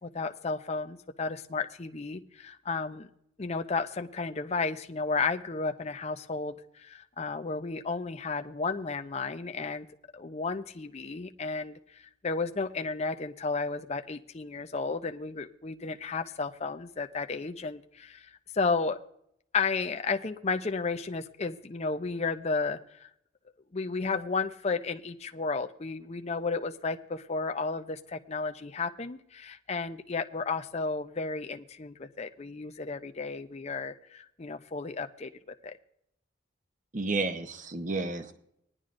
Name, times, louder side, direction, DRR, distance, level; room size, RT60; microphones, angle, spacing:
voice 1, 0.0-3.1 3.4-9.9 10.1-19.0 19.5-23.1 23.7-35.7, left 4 dB, 35° left, 7 dB, 0.5 m, -33 dB
voice 2, 36.9-38.3, right 3 dB, 40° right, 8 dB, 0.8 m, -31 dB
19.5 x 11.0 x 2.5 m, 0.74 s
head